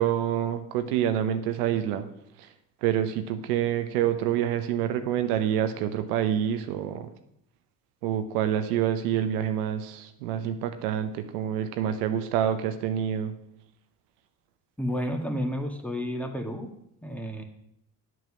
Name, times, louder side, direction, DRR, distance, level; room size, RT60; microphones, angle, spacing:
voice 1, 0.0-2.0 2.8-7.1 8.0-13.3, right 10 dB, 90° right, 9 dB, 0.9 m, -27 dB
voice 2, 14.8-16.7 17.0-17.4, equal, 5° left, 4 dB, 1.9 m, -31 dB
8.0 x 7.7 x 6.2 m, 0.75 s
hypercardioid pair, 60°, 45 cm